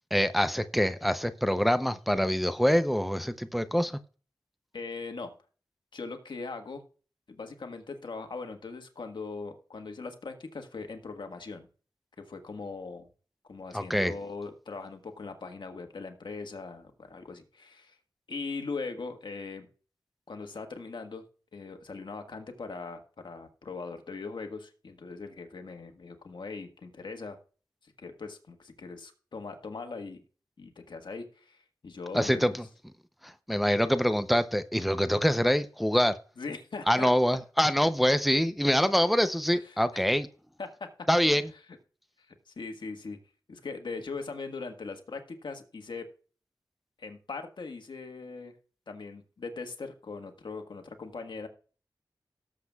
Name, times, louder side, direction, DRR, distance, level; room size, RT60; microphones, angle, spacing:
voice 1, 0.1-4.0 13.7-14.1 32.1-32.6 33.2-36.2 36.9-40.3 41.1-41.5, equal, ahead, 0.7 m, -25 dB
voice 2, 4.7-5.3 5.9-6.8 7.3-11.7 12.2-13.1 13.5-18.0 18.3-19.7 20.3-21.2 21.5-27.4 27.8-30.2 30.6-32.4 36.4-37.1 39.5-39.6 39.9-40.0 40.6-40.7 42.5-43.2 43.5-46.0 47.0-48.5 48.9-51.5, left 4 dB, 75° left, 1.6 m, -40 dB
18.0 x 7.6 x 2.4 m
wide cardioid pair, 60°, 8 cm